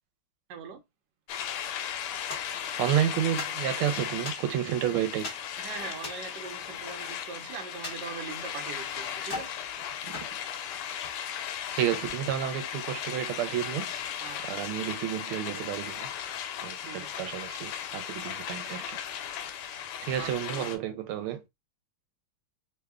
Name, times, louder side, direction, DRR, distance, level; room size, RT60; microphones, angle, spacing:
sound 1, 1.3-20.8, left 9 dB, 90° left, 1.5 m, -36 dB
sound 2, 2.3-2.9 3.4-4.8 5.2-5.5 5.9-7.3 7.8-8.8 9.2-9.6 10.1-11.2, left 3 dB, 35° left, 1.1 m, -41 dB
voice 1, 2.8-5.3 10.1-10.3 11.8-13.9 14.5-16.1 16.6-19.0 20.0-21.4, right 10 dB, 85° right, 1.5 m, -30 dB
voice 2, 5.6-9.5 14.2-14.6 16.9-17.3 20.2-20.8, right 6 dB, 65° right, 1.2 m, -41 dB
3.6 x 2.2 x 3.5 m
omnidirectional pair, 2.4 m